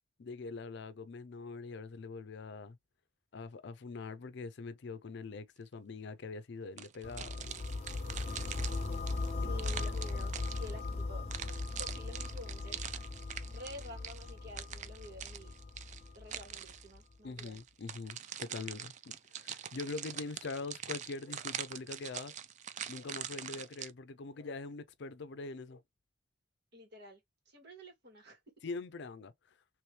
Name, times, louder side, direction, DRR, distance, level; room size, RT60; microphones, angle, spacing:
voice 1, 0.2-2.8 3.3-7.6 9.4-9.7 17.2-22.3 22.9-25.8 28.6-29.3, left 3 dB, 65° left, 0.5 m, -43 dB
sound 1, 6.8-10.9 11.3-16.9 17.4-23.9, right 9 dB, 40° right, 0.4 m, -44 dB
sound 2, 7.0-17.0, left 3 dB, 35° left, 0.8 m, -39 dB
voice 2, 9.5-11.2 11.6-12.9 13.5-15.5 16.1-17.6 26.7-27.2 27.5-28.4, left 1 dB, 60° right, 2.0 m, -50 dB
3.1 x 3.0 x 3.2 m
head